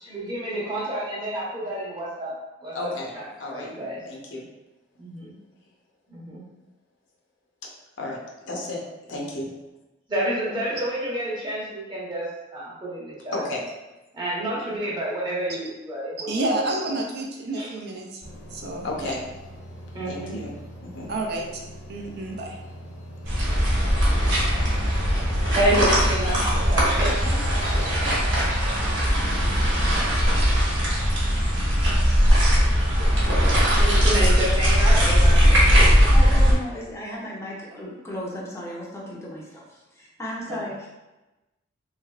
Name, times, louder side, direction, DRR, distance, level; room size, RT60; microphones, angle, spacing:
voice 1, 0.0-2.3 2.6-3.2 3.5-4.0 5.0-5.3 6.1-6.4 10.1-13.4 14.1-16.3 17.5-17.7 19.9-20.4 25.5-27.5 33.7-35.6 40.5-40.6, right 1 dB, 25° right, -7 dB, 0.9 m, -29 dB
voice 2, 2.7-3.1 3.4-3.7 4.1-4.4 8.0-8.2 8.4-8.8 9.1-9.5 13.3-13.6 18.8-19.2 20.1-20.5 20.8-21.1, left 2 dB, 70° left, -1 dB, 0.7 m, -32 dB
voice 3, 16.3-18.2 18.5-19.1 21.1-21.5 21.9-22.6, right 2 dB, 55° right, 0 dB, 0.5 m, -29 dB
sound 1, 18.2-26.2, equal, 85° left, 1.1 m, -42 dB
sound 2, 23.2-36.5, equal, 70° right, 1.1 m, -19 dB
voice 4, 36.1-40.9, equal, 15° left, -4 dB, 0.6 m, -35 dB
3.3 x 3.2 x 2.3 m, 1.0 s
head